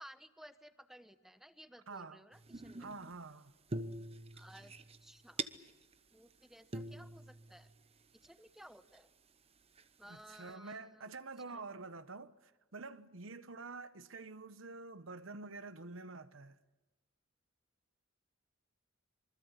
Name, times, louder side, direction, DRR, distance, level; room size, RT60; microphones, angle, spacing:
voice 1, 0.0-2.9 4.3-4.7 5.0-5.5 6.1-7.7 8.2-9.1 10.0-11.1 11.5-11.6, equal, ahead, 1.0 m, -57 dB
voice 2, 1.9-2.2 2.8-3.5 10.1-16.6, right 3 dB, 70° right, 1.1 m, -48 dB
sound 1, 2.3-3.3 3.7-5.9 6.3-6.4 6.7-8.3 8.9-9.0 9.8-10.2, right 2 dB, 30° right, 1.0 m, -44 dB
26.0 x 24.5 x 8.1 m
head